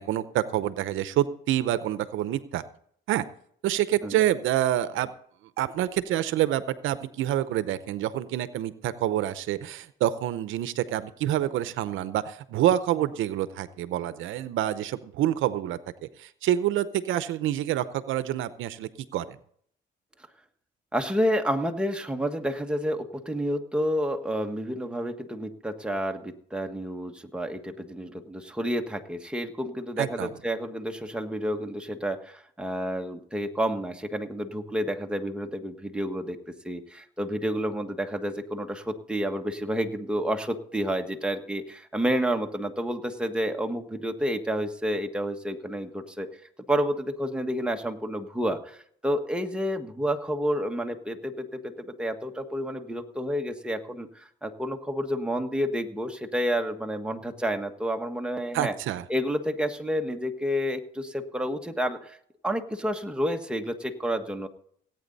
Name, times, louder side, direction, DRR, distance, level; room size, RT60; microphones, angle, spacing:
voice 1, 0.0-2.6 3.1-3.2 3.6-5.1 5.6-19.2 30.0-30.3 58.5-59.0, right 12 dB, 85° right, 14 dB, 0.7 m, -27 dB
voice 2, 20.9-36.4 36.6-46.3 46.7-48.8 49.0-58.7 59.1-62.2 62.4-64.5, equal, 5° right, 4 dB, 1.5 m, -30 dB
17.5 x 9.0 x 4.1 m, 0.63 s
cardioid pair, 90°, 20 cm